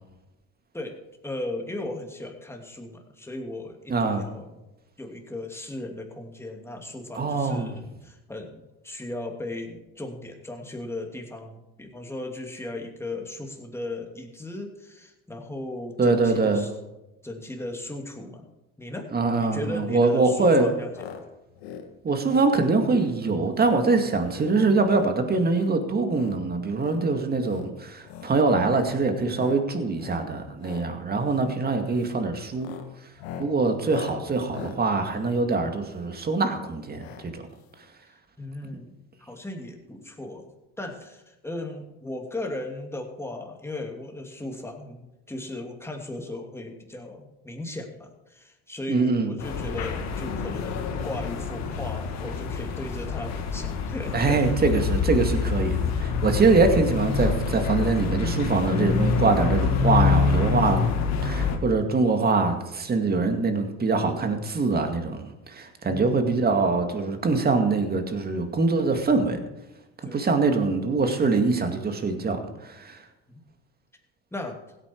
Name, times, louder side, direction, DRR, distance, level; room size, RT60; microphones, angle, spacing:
voice 1, 1.2-4.6 5.0-16.7 17.2-18.5 18.8-19.1 19.4-21.1 22.1-22.2 38.4-38.9 39.2-40.5 40.8-54.4 65.8-66.4 70.0-70.5 73.3-73.4 74.3-74.6, left 2 dB, 10° left, 2 dB, 2.7 m, -37 dB
voice 2, 3.9-4.3 7.2-7.7 16.0-16.6 19.1-20.7 22.0-32.7 33.4-37.4 48.9-49.3 54.1-60.8 61.2-69.4 70.0-73.0, right 3 dB, 30° right, 6 dB, 2.2 m, -23 dB
sound 1, 20.9-21.2 21.5-21.9 22.2-22.5 22.9-23.1 23.5-23.8 24.1-24.4 24.7-25.1 25.5-26.4 26.7-27.0 27.4-27.7 28.0-28.3 28.7-29.0 29.3-29.6 29.9-30.3 30.5-30.9 31.2-31.5 31.9-32.2 32.5-36.2 37.0-37.2 37.5-37.6 37.8-37.9, left 8 dB, 85° left, 1.6 m, -42 dB
sound 2, 49.4-61.6, left 5 dB, 60° left, 2.1 m, -26 dB
16.0 x 9.0 x 4.6 m, 0.98 s
supercardioid pair, 80°, 31 cm